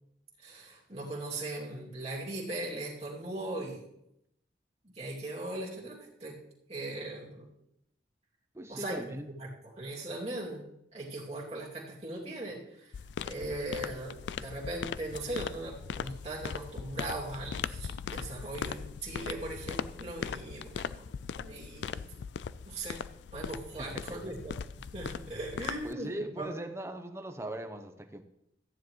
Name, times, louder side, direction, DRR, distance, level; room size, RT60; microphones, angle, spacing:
voice 1, 0.4-3.8 4.8-6.4 6.7-7.5 8.7-9.1 9.4-10.6 10.9-12.9 13.2-21.1 21.3-22.2 22.7-23.0 23.3-26.6, right 2 dB, 35° right, -4 dB, 2.5 m, -39 dB
voice 2, 8.5-9.3 23.8-24.2 25.8-28.2, right 1 dB, 15° right, 7 dB, 0.7 m, -40 dB
sound 1, 12.9-25.9, left 7 dB, 80° left, 0.3 m, -39 dB
14.5 x 9.9 x 3.1 m, 0.80 s
head